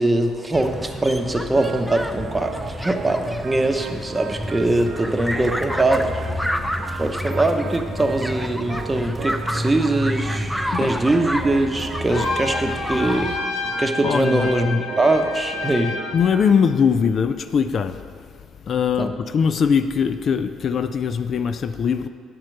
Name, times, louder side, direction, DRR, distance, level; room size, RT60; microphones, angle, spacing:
voice 1, 0.0-6.2 7.0-13.4 13.8-16.0 19.0-19.1, right 2 dB, 20° right, 0.9 m, -22 dB
sound 1, 0.5-13.4, equal, ahead, 0.5 m, -29 dB
Organ, 1.5-16.6, right 7 dB, 60° right, 0.5 m, -37 dB
Trumpet, 12.1-16.4, left 4 dB, 80° left, 0.8 m, -30 dB
voice 2, 14.0-14.5 16.1-18.0 18.7-22.1, left 6 dB, 55° left, 0.4 m, -21 dB
9.5 x 4.4 x 6.5 m
supercardioid pair, 60°, 0 cm